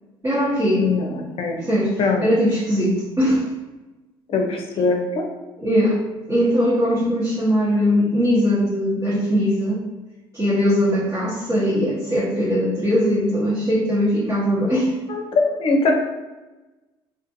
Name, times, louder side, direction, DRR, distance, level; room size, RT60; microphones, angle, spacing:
voice 1, 0.2-0.9 1.6-3.5 5.6-6.0 6.3-9.8 10.3-14.9, equal, 30° right, -9 dB, 1.1 m, -20 dB
voice 2, 0.8-1.6 2.0-2.2 4.3-5.3 15.1-15.9, left 3 dB, 50° left, 3 dB, 0.6 m, -21 dB
2.5 x 2.5 x 2.6 m, 1.1 s
hypercardioid pair, 65°, 12 cm